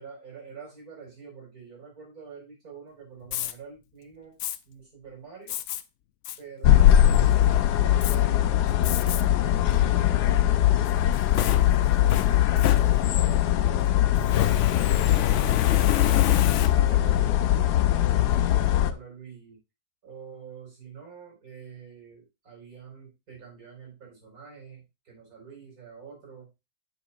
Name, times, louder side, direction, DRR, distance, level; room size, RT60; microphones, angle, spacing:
voice 1, 0.0-4.4 4.7-5.6 6.4-11.9 12.3-16.1 16.7-17.5 17.9-19.6 20.0-26.5, right 6 dB, 65° right, 0 dB, 4.9 m, -47 dB
Fire, 3.2-3.5 4.4-4.6 5.5-5.8 6.2-6.4 6.9-7.3 8.0-8.2 8.8-9.2 9.7-9.8 10.9-13.3 14.2-17.1, left 11 dB, 70° left, 0.7 m, -29 dB
sound 1, 6.6-18.9, left 12 dB, 90° left, 1.2 m, -21 dB
10.0 x 6.7 x 2.4 m, 0.24 s
omnidirectional pair, 1.7 m